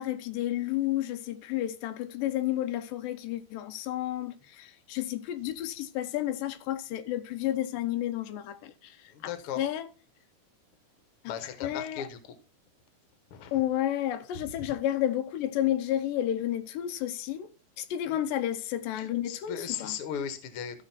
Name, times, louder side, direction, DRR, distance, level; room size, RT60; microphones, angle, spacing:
voice 1, 0.0-9.9 11.6-12.1 13.5-20.0, left 12 dB, 85° left, 2.3 m, -31 dB
voice 2, 9.1-9.6 11.3-12.2 13.3-13.6 18.1-18.2 19.0-20.8, left 8 dB, 55° left, 1.7 m, -37 dB
14.0 x 5.4 x 4.3 m
omnidirectional pair, 3.9 m